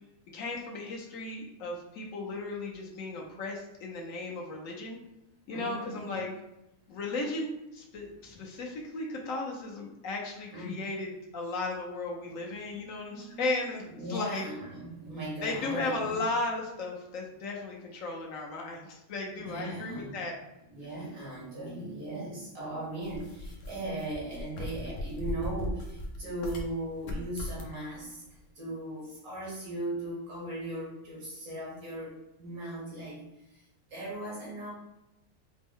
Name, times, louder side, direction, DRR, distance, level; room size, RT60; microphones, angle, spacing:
voice 1, 0.3-5.0 5.5-6.3 6.9-13.8 14.1-14.4 15.4-20.3, left 2 dB, 70° left, -1 dB, 1.1 m, -35 dB
voice 2, 5.4-6.3 8.0-8.1 10.5-10.9 12.1-12.3 12.6-16.2 19.3-20.3 20.7-33.2 33.5-33.6 33.9-34.7, right 1 dB, 90° right, -6 dB, 2.0 m, -38 dB
sound 1, 23.0-26.7 27.0-27.8, equal, 90° left, 1.2 m, -38 dB
4.3 x 2.0 x 3.6 m, 0.89 s
omnidirectional pair, 1.5 m